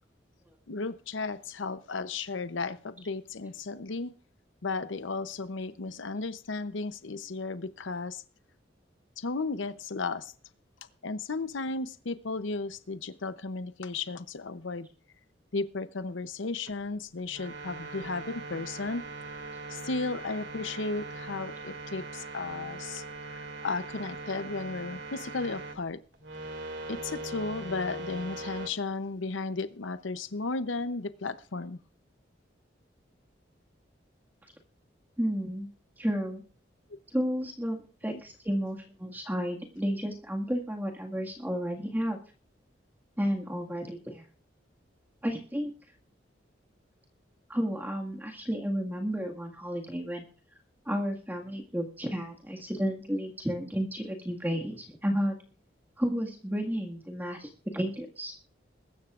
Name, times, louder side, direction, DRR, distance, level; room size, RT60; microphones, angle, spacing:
voice 1, 0.7-4.1 4.6-8.2 9.2-10.3 11.0-14.9 15.5-19.0 19.7-26.0 26.9-31.8 38.1-38.2, left 3 dB, 85° left, 0.7 m, -34 dB
sound 1, 16.7-16.8 17.2-25.8 26.1-28.7, right 2 dB, 85° right, 2.5 m, -41 dB
voice 2, 35.2-35.7 36.0-36.4 37.1-42.2 43.2-44.2 45.2-45.7 47.5-50.3 50.9-55.4 56.0-58.3, equal, 10° right, 1.8 m, -32 dB
22.5 x 13.0 x 2.5 m
head